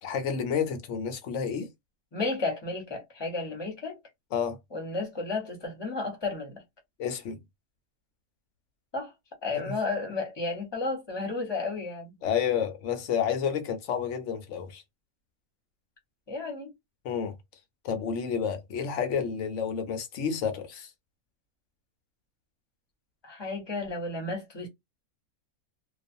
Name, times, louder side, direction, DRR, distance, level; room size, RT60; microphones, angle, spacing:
voice 1, 0.0-1.7 4.3-4.6 7.0-7.4 9.5-9.7 12.2-14.8 17.0-17.3 17.8-20.9, left 7 dB, 60° left, 0.9 m, -30 dB
voice 2, 2.1-4.0 4.7-6.6 8.9-9.1 9.4-12.1 16.3-16.7 23.2-24.7, left 3 dB, 20° left, 0.9 m, -32 dB
2.4 x 2.4 x 2.6 m
omnidirectional pair, 1.6 m